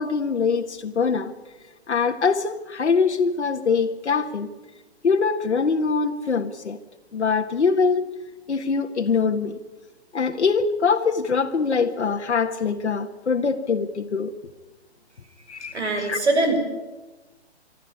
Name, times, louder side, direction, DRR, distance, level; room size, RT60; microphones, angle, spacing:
voice 1, 0.0-1.3 1.9-4.5 5.0-6.8 7.1-8.1 8.5-9.6 10.1-14.3 15.5-16.2, left 5 dB, 85° left, 4 dB, 1.6 m, -23 dB
voice 2, 15.7-16.6, right 2 dB, 80° right, 6 dB, 5.8 m, -22 dB
24.0 x 13.0 x 9.6 m, 1.2 s
hypercardioid pair, 165°, 33 cm